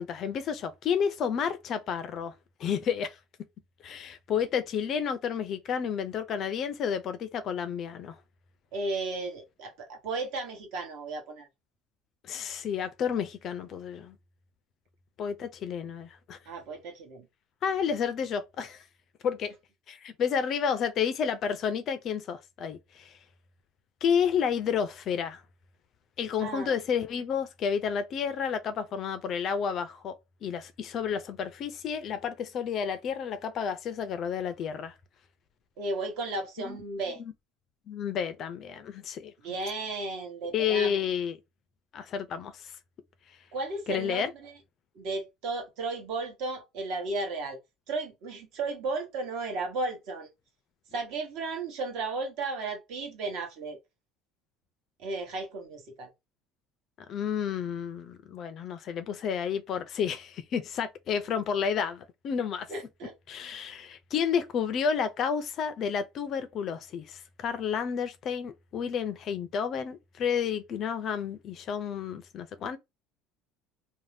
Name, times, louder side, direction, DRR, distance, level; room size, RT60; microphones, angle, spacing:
voice 1, 0.0-2.3 2.6-3.2 3.8-8.2 12.2-14.2 15.2-16.4 17.6-18.8 19.2-19.5 19.9-23.2 24.0-25.4 26.2-34.9 36.6-36.8 37.2-37.3 37.9-39.3 40.5-41.4 41.9-42.7 43.9-44.3 57.1-62.7 63.3-72.8, left 7 dB, 35° left, 0.4 m, -31 dB
voice 2, 8.7-11.5 16.5-17.3 26.4-26.8 35.8-37.2 39.4-41.0 43.5-44.5 44.9-47.6 47.9-50.3 50.9-53.8 55.0-56.1 62.7-63.1, right 3 dB, 55° right, 1.1 m, -34 dB
2.6 x 2.1 x 3.2 m
cardioid pair, 175°, 0 cm